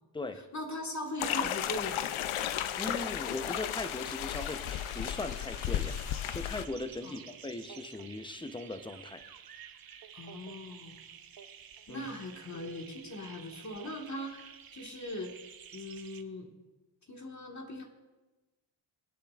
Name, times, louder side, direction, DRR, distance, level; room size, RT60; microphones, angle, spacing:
voice 1, 0.5-2.0 7.0-7.2 10.1-11.0 11.9-15.3 15.7-16.5 17.1-17.8, left 1 dB, 35° left, 1 dB, 1.7 m, -40 dB
sound 1, 1.2-6.6, left 11 dB, 75° left, 0.7 m, -34 dB
voice 2, 2.8-9.2 11.9-12.1, left 2 dB, 10° left, 9 dB, 0.7 m, -39 dB
sound 2, 4.3-16.2, right 8 dB, 45° right, 0.8 m, -51 dB
24.5 x 8.6 x 2.5 m, 1.1 s
cardioid pair, 85°, 48 cm